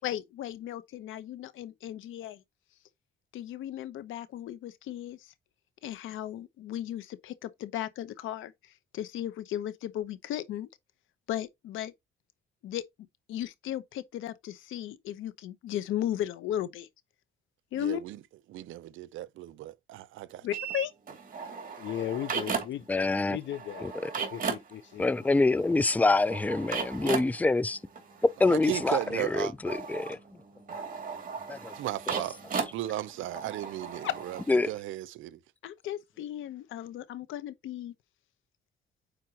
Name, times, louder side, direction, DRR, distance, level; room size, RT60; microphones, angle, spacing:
voice 1, 0.0-2.4 3.3-5.3 5.8-8.5 8.9-10.7 11.3-11.9 12.6-12.8 13.3-16.9 17.7-18.0 20.4-20.9 34.0-34.1 35.6-37.9, left 12 dB, 85° left, 1.0 m, -35 dB
voice 2, 17.7-18.2 18.5-20.5 28.4-29.5 31.8-32.4 32.7-35.4, right 14 dB, 80° right, 0.6 m, -36 dB
sound 1, 20.5-23.0 23.2-34.5, right 6 dB, 45° right, 2.8 m, -37 dB
voice 3, 21.8-22.9 23.2-25.3, left 11 dB, 70° left, 0.9 m, -37 dB
voice 4, 22.9-23.4 25.0-27.8 28.4-29.0 29.3-30.2 34.5-34.7, left 3 dB, 10° left, 0.5 m, -25 dB
8.7 x 4.6 x 3.0 m
cardioid pair, 90°, 20 cm